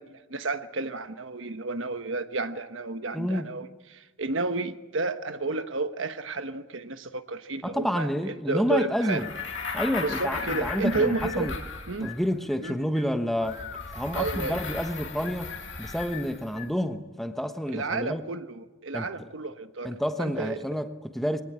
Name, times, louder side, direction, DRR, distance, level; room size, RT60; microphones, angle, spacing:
voice 1, 0.0-9.2 10.0-11.5 11.9-12.1 12.6-12.8 14.1-14.6 17.7-20.6, right 3 dB, 90° right, 9 dB, 1.2 m, -31 dB
voice 2, 3.1-3.5 7.6-9.3 9.7-11.5 12.0-13.6 13.9-15.5 15.8-18.2 18.9-19.3 19.8-21.4, equal, ahead, 7 dB, 1.1 m, -29 dB
sound 1, 8.8-16.8, left 7 dB, 50° left, 1.5 m, -43 dB
sound 2, 9.1-12.3 13.4-16.6, left 4 dB, 70° left, 2.5 m, -36 dB
23.5 x 18.0 x 8.8 m, 1.2 s
head